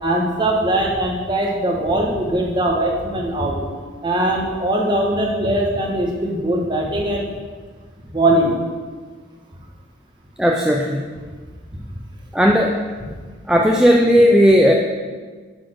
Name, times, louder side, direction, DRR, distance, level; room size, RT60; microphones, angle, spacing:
voice 1, 0.0-3.6 4.0-7.3 8.1-8.5 11.7-11.8, right 1 dB, 20° right, -2 dB, 1.2 m, -20 dB
voice 2, 10.4-11.0 12.3-12.7 13.5-14.7, equal, 5° right, 0 dB, 0.4 m, -14 dB
9.4 x 4.2 x 6.3 m, 1.5 s
head